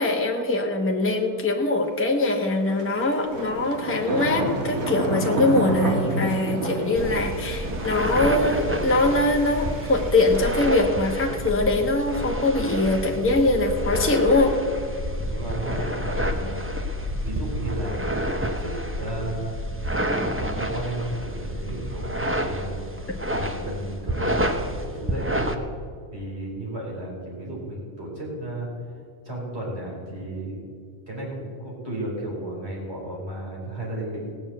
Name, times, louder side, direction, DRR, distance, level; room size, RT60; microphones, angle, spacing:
voice 1, 0.0-14.5 19.0-19.1, left 2 dB, 10° left, 1 dB, 1.2 m, -22 dB
sound 1, 2.7-10.7, right 1 dB, 80° right, 2.1 m, -30 dB
sound 2, 6.9-25.5, equal, 10° right, 0.7 m, -29 dB
voice 2, 15.3-16.7 17.2-19.6 20.3-25.7 26.1-28.7 29.2-30.6 31.1-34.2, right 1 dB, 45° right, -4 dB, 5.0 m, -33 dB
17.5 x 7.2 x 7.9 m, 2.1 s
omnidirectional pair, 1.5 m